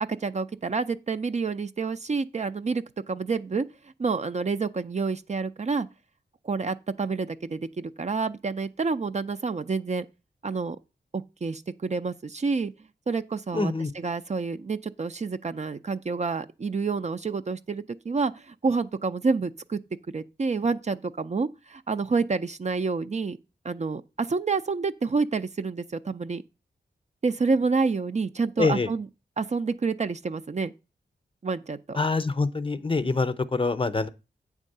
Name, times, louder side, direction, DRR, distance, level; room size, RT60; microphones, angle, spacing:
voice 1, 0.0-3.7 4.0-5.9 6.4-10.1 10.4-10.8 11.1-12.7 13.1-19.8 20.1-23.4 23.6-26.4 27.2-29.1 29.4-30.7 31.4-32.0, right 4 dB, 40° right, 0.5 m, -28 dB
voice 2, 13.5-13.9 28.6-28.9 31.9-34.1, left 3 dB, 30° left, 0.6 m, -25 dB
8.4 x 3.6 x 6.6 m
cardioid pair, 65°, 17 cm